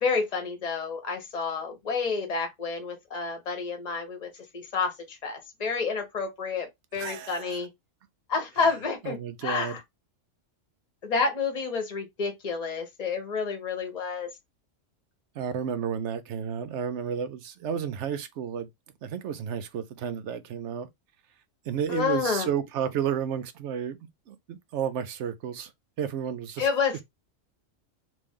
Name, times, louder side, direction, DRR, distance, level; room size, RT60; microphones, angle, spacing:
voice 1, 0.0-7.7 8.3-9.8 11.0-14.3 21.9-22.5 26.6-27.0, left 5 dB, 35° left, 1.0 m, -29 dB
voice 2, 6.9-7.7 9.0-9.8 15.4-18.7 19.0-20.9 21.7-24.0 24.3-25.7 26.0-26.7, right 8 dB, 70° right, 0.9 m, -32 dB
3.1 x 2.6 x 3.5 m
omnidirectional pair, 1.3 m